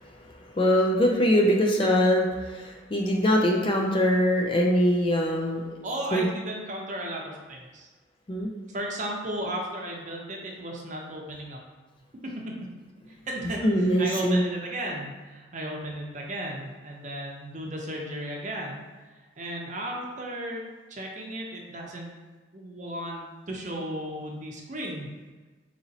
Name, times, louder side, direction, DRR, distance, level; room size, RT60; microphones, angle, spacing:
voice 1, 0.5-5.7 6.1-6.2 8.3-8.5 13.6-14.4, equal, 25° left, 1 dB, 0.3 m, -23 dB
voice 2, 5.8-7.9 8.7-11.6 13.1-18.8 19.1-20.6 20.9-22.1 22.5-25.1, right 1 dB, 40° right, -1 dB, 0.6 m, -35 dB
4.0 x 2.9 x 2.7 m, 1.3 s
head